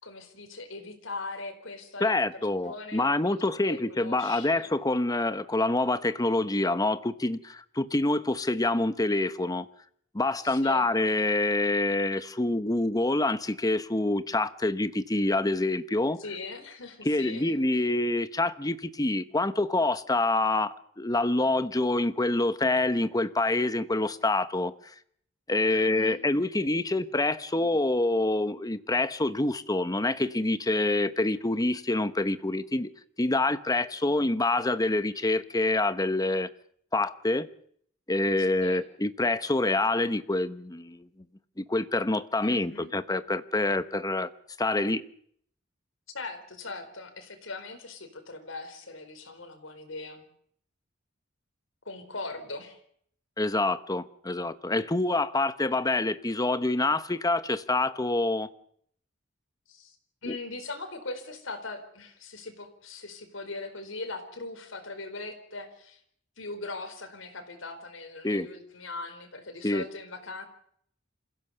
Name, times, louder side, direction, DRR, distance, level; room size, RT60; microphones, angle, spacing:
voice 1, 0.0-3.4 3.6-4.7 10.4-10.9 16.2-17.5 25.7-26.2 38.6-38.8 42.4-42.9 46.1-50.2 51.8-52.8 59.7-60.0 60.2-66.0 66.4-70.4, left 3 dB, 75° left, 4.6 m, -40 dB
voice 2, 2.0-9.7 10.1-16.2 17.0-24.7 25.5-32.9 33.2-36.5 36.9-37.5 38.1-41.1 41.6-44.3 44.6-45.0 53.4-58.5 60.3-60.4 68.2-68.5 69.6-69.8, left 2 dB, 20° left, 1.0 m, -26 dB
27.5 x 16.0 x 6.7 m
head